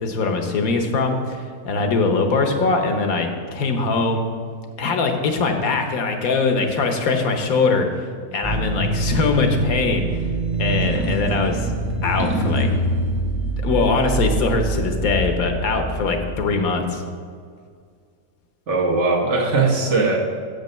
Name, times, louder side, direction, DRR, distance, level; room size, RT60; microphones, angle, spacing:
voice 1, 0.0-4.3 4.8-7.9 8.3-10.2 10.6-11.7 12.0-12.7 13.6-17.0, left 4 dB, 70° left, 5 dB, 1.3 m, -21 dB
sound 1, 8.4-16.5, right 2 dB, 10° right, 0.8 m, -24 dB
voice 2, 18.7-20.2, right 3 dB, 55° right, 1 dB, 1.4 m, -19 dB
7.9 x 5.3 x 6.6 m, 2.1 s
omnidirectional pair, 1.6 m